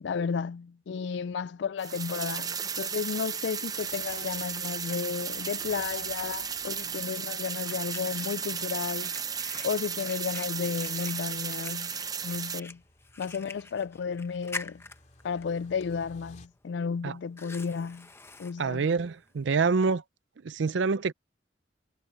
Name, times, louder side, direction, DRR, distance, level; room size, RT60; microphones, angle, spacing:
voice 1, 0.0-9.2 9.6-12.0 12.2-12.8 13.2-14.8 15.2-18.1 18.4-18.9, left 6 dB, 70° left, 0.3 m, -33 dB
sound 1, 1.8-12.6, right 7 dB, 20° right, 0.7 m, -34 dB
sound 2, 3.8-16.5, left 3 dB, 40° left, 3.8 m, -58 dB
Fire, 5.0-19.9, left 3 dB, 15° left, 0.9 m, -48 dB
voice 2, 18.6-20.0 20.4-21.1, right 4 dB, 80° right, 0.5 m, -26 dB
head